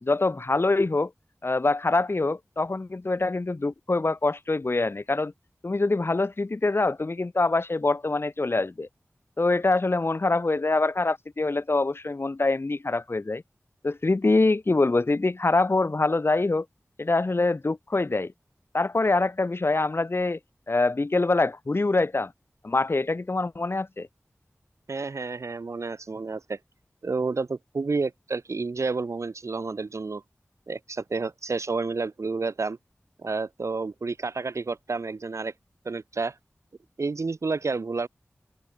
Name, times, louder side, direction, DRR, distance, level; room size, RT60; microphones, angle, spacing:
voice 1, 0.0-1.1 1.4-5.3 5.6-8.9 9.4-13.4 13.8-16.7 17.0-18.3 18.7-20.4 20.7-22.3 22.6-24.1, left 3 dB, 55° left, 2.3 m, -24 dB
voice 2, 24.9-26.6 27.0-30.2 30.7-32.8 33.2-35.5 35.9-36.4 37.0-38.1, right 4 dB, 85° right, 1.8 m, -30 dB
open air
wide cardioid pair, 70°, 5 cm